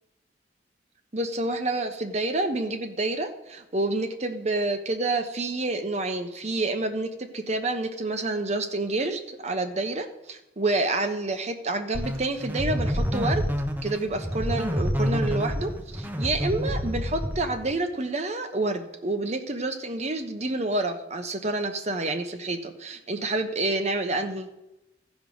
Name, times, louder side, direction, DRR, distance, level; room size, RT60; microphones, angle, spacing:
voice 1, 1.1-13.4 13.8-24.5, right 2 dB, 40° right, 7 dB, 1.0 m, -28 dB
sound 1, 11.9-17.8, equal, 10° right, 0.8 m, -28 dB
14.5 x 5.3 x 6.3 m, 0.93 s
head